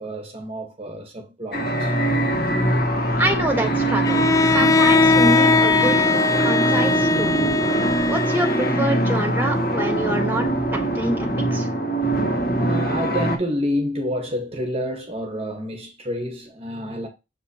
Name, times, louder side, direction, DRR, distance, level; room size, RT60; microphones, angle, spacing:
voice 1, 0.0-1.9 12.6-17.1, equal, 30° right, 1.2 m, -28 dB
sound 1, 1.5-13.4, right 1 dB, 55° left, 1.6 m, -23 dB
voice 2, 3.2-4.2 4.5-6.1 6.4-7.4 8.1-10.5 10.7-11.7, right 1 dB, 10° right, 1.3 m, -26 dB
Bowed string instrument, 4.0-9.1, left 3 dB, 20° left, 0.3 m, -19 dB
7.3 x 5.2 x 2.8 m
head